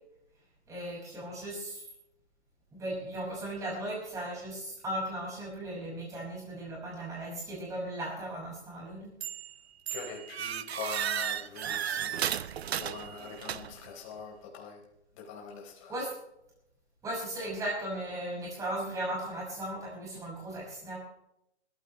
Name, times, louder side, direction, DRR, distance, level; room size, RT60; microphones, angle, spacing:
voice 1, 0.7-1.8 2.7-9.1 15.9-16.1 17.0-21.0, right 1 dB, 10° right, -4 dB, 6.2 m, -37 dB
sound 1, 9.2-9.5 9.9-13.9, right 9 dB, 65° right, 0.9 m, -34 dB
voice 2, 9.9-12.3 12.8-14.8 15.1-15.9, left 5 dB, 30° left, 0 dB, 4.3 m, -43 dB
21.5 x 14.5 x 3.4 m, 0.80 s
hypercardioid pair, 170°, 34 cm